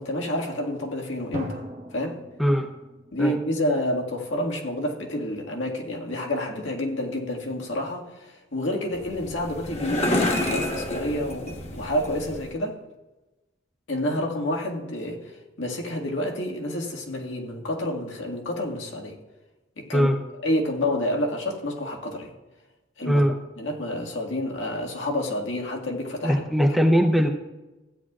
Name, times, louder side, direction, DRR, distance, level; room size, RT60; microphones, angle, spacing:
voice 1, 0.0-1.6 1.9-2.2 3.1-12.8 13.9-19.2 19.8-20.1 20.4-22.3 23.0-23.2 23.6-26.4, left 1 dB, 85° left, 0 dB, 1.9 m, -29 dB
Drum, 1.3-4.1, right 1 dB, 35° right, 1.0 m, -38 dB
sound 1, 8.9-12.5, left 1 dB, 35° left, 1.2 m, -28 dB
voice 2, 26.2-27.3, equal, ahead, 3 dB, 0.6 m, -20 dB
16.0 x 9.9 x 2.4 m, 1.1 s
head